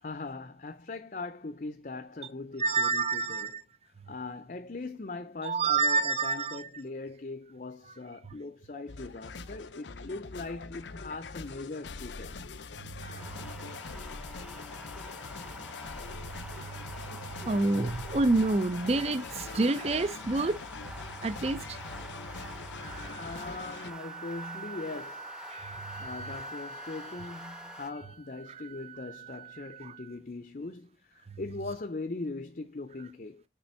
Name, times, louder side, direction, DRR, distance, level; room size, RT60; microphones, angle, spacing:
voice 1, 0.0-3.6 3.8-12.4 23.1-25.3 25.7-33.4, left 3 dB, 45° left, 0.6 m, -40 dB
voice 2, 2.6-3.6 5.4-6.7 8.7-8.8 13.0-13.4 16.5-20.6 21.2-21.8 22.3-22.5 25.5-26.1, right 3 dB, 35° right, 0.5 m, -29 dB
sound 1, 8.9-23.9, left 4 dB, 85° left, 0.7 m, -43 dB
sound 2, 13.2-27.9, equal, 5° right, 0.7 m, -47 dB
Wind instrument woodwind instrument, 22.4-30.2, right 3 dB, 50° right, 1.4 m, -45 dB
6.8 x 4.3 x 4.4 m
head